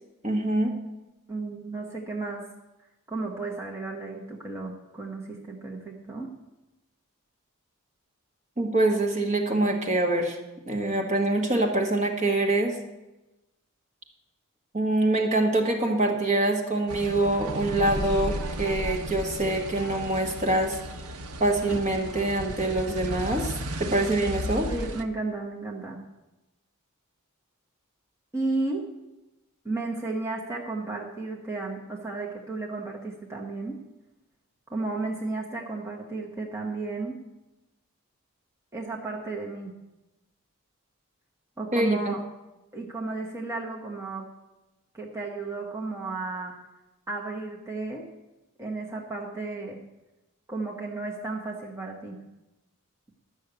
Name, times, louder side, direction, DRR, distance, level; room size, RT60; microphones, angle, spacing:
voice 1, 0.2-0.7 8.6-10.4 10.7-12.7 14.7-20.8 21.4-23.5 23.8-24.7 41.7-42.2, right 2 dB, 30° right, 2 dB, 1.5 m, -25 dB
voice 2, 1.3-2.4 3.1-6.3 24.7-26.0 28.3-28.9 29.6-33.8 34.7-37.1 38.7-39.7 41.6-42.2 42.7-44.3 44.9-46.5 47.1-48.0 48.6-49.8 50.5-52.2, right 3 dB, 10° right, -2 dB, 1.2 m, -33 dB
sound 1, 16.9-25.0, right 1 dB, 75° right, 0.9 m, -34 dB
12.0 x 6.3 x 8.1 m, 1.0 s
head